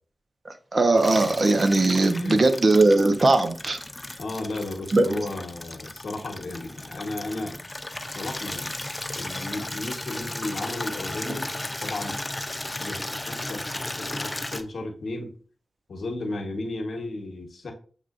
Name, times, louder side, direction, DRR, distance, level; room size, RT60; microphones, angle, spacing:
voice 1, 0.7-3.8 4.9-5.2, right 2 dB, 50° right, 0.7 m, -19 dB
Water tap faucet / Liquid, 1.0-14.6, left 1 dB, 20° left, 0.5 m, -35 dB
voice 2, 2.1-2.5 4.2-7.7 8.1-8.8 9.1-11.5 11.8-12.2 12.8-15.4 15.9-17.7, left 2 dB, 75° left, 1.0 m, -34 dB
7.2 x 2.4 x 2.5 m
cardioid pair, 40°, 0 cm